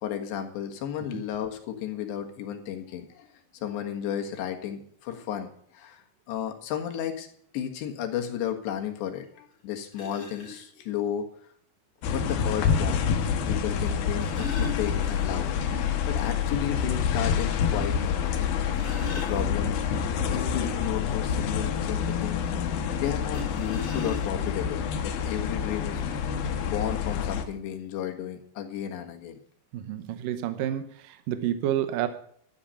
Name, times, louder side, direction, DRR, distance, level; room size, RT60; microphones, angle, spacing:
voice 1, 0.0-3.3 3.5-7.3 7.5-11.3 12.1-13.2 13.5-15.5 16.1-18.5 19.1-19.9 20.3-26.0 26.7-29.4, left 10 dB, 85° left, 5 dB, 3.8 m, -33 dB
sound 1, 9.2-9.3 9.9-10.6 12.0-12.1 13.9-15.6 15.9-16.0 16.4-16.5 17.0-17.1 18.4-19.9 23.2-24.6 25.5-25.6 25.9-26.1, left 1 dB, 30° left, 3.4 m, -40 dB
sound 2, 12.0-27.5, left 7 dB, 65° left, 2.8 m, -27 dB
voice 2, 29.7-32.1, right 11 dB, 80° right, 10 dB, 2.0 m, -30 dB
13.0 x 9.4 x 5.6 m, 0.63 s
omnidirectional pair, 4.9 m